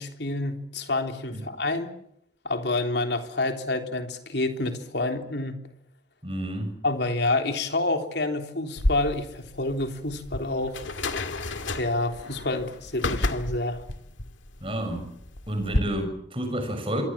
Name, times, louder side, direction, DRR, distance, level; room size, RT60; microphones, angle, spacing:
voice 1, 0.0-1.9 2.4-5.6 6.8-10.9 11.8-13.8, left 2 dB, 65° left, 5 dB, 3.4 m, -28 dB
voice 2, 6.2-6.7 14.6-15.1 15.5-17.0, right 1 dB, 30° right, 6 dB, 6.4 m, -30 dB
sound 1, 8.8-15.8, left 2 dB, 90° left, 2.1 m, -31 dB
26.5 x 23.0 x 7.5 m, 0.74 s
head